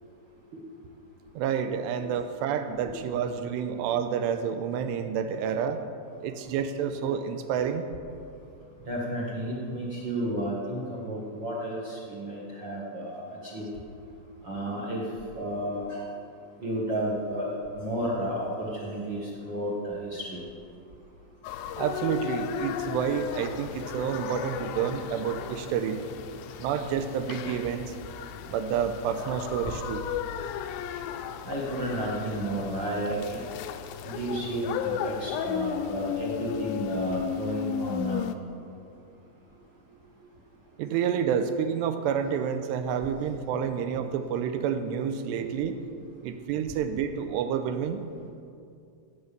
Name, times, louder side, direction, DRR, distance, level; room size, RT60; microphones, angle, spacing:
voice 1, 1.4-5.8 6.2-7.8 21.8-26.0 26.6-28.0 28.5-30.1 39.9-40.0 40.7-45.8 46.2-48.0, right 7 dB, 90° right, 9 dB, 2.9 m, -29 dB
voice 2, 8.9-13.7 14.4-15.0 15.3-16.0 16.6-20.4 31.4-33.4 34.0-38.3, right 1 dB, 65° right, -4 dB, 1.1 m, -32 dB
sound 1, 21.4-38.4, left 9 dB, 90° left, 2.0 m, -35 dB
16.5 x 8.0 x 6.8 m, 2.4 s
omnidirectional pair, 4.9 m